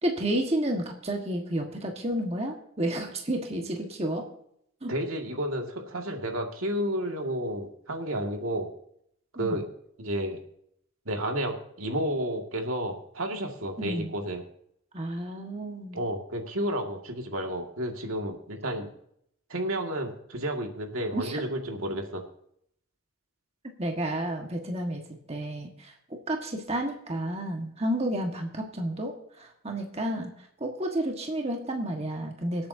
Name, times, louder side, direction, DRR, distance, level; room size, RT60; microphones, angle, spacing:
voice 1, 0.0-4.2 4.8-4.9 9.3-9.6 13.8-14.1 14.9-16.0 21.1-21.4 23.8-25.0 25.3-25.9 26.3-32.7, right 1 dB, 30° right, 2 dB, 1.6 m, -31 dB
voice 2, 4.9-8.7 9.4-9.6 10.0-10.4 11.1-14.4 15.9-18.9 19.5-22.2, right 1 dB, 80° right, 2 dB, 2.1 m, -31 dB
25.5 x 8.7 x 2.8 m, 0.71 s
head